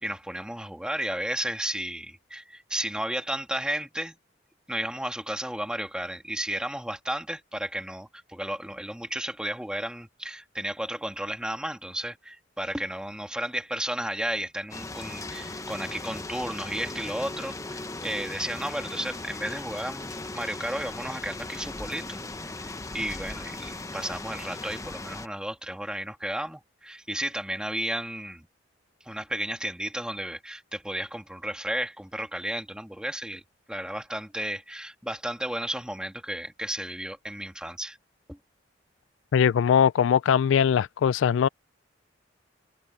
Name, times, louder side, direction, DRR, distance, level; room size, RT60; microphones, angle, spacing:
voice 1, 0.0-4.2 4.7-28.5 29.0-33.4 33.7-38.0 38.3-38.4, right 1 dB, 5° right, 1.9 m, -33 dB
sound 1, 14.7-25.3, left 2 dB, 15° left, 0.8 m, -38 dB
voice 2, 39.3-41.5, left 8 dB, 80° left, 0.3 m, -21 dB
head